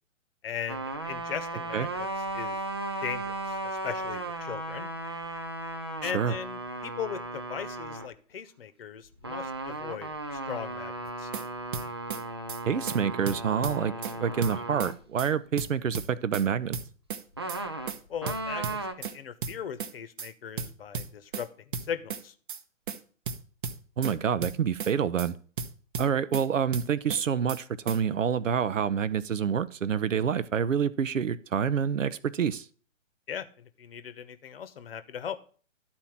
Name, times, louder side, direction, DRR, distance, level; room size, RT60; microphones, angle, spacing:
voice 1, 0.4-2.1 2.3-2.6 3.0-3.6 3.8-4.9 6.0-11.3 18.1-21.5 21.8-22.3 33.3-35.4, left 8 dB, 45° left, 1.0 m, -38 dB
sound 1, 0.7-8.1 9.2-14.9 17.3-18.9, right 2 dB, 20° right, 0.4 m, -36 dB
voice 2, 6.0-6.3 12.7-16.8 24.0-25.4 26.0-32.7, right 7 dB, 75° right, 0.7 m, -27 dB
sound 2, 11.1-11.4 11.7-12.2 12.5-12.6 12.9-13.0 13.3-14.1 14.4-14.9 15.2-15.3 15.6-16.5 16.7-17.2 17.5-17.6 17.9-18.0 18.3-19.1 19.4-19.9 20.2-20.3 20.6-21.4 21.7-22.2 22.5-22.6 22.9-23.0 23.3-24.1 24.4-24.9 25.2-25.3 25.6-26.4 26.7-27.2 27.5-27.6 27.9-28.0, right 6 dB, 40° right, 0.9 m, -35 dB
11.5 x 4.4 x 7.2 m
figure-of-eight pair, 130°, 39 cm